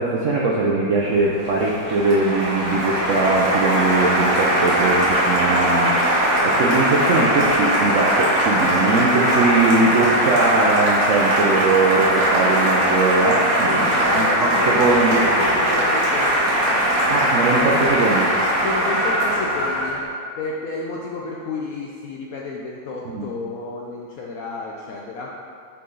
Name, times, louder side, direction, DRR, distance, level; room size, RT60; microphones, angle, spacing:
voice 1, 0.0-5.9 6.4-15.2 17.1-18.3 23.1-23.3, right 3 dB, 70° right, -4 dB, 0.7 m, -21 dB
Applause, 1.1-20.0, right 1 dB, 50° right, 1.7 m, -20 dB
voice 2, 6.3-6.7 13.6-16.9 18.6-20.0 20.4-25.3, left 3 dB, 75° left, -2 dB, 0.8 m, -31 dB
sound 1, 9.5-20.1, equal, 45° left, 2.2 m, -35 dB
6.9 x 4.9 x 3.9 m, 2.2 s
omnidirectional pair, 2.0 m